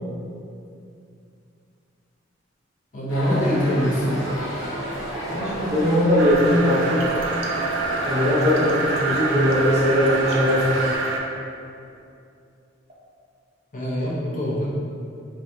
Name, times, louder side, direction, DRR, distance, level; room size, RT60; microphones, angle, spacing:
voice 1, 2.9-4.3 13.7-14.6, equal, 45° left, -6 dB, 0.6 m, -23 dB
sound 1, 3.1-11.0, equal, ahead, 1.4 m, -32 dB
voice 2, 5.3-7.0 8.0-10.7, left 1 dB, 35° right, -7 dB, 0.6 m, -20 dB
sound 2, 6.2-11.2, right 3 dB, 85° right, 0.4 m, -26 dB
2.7 x 2.2 x 3.4 m, 2.5 s
head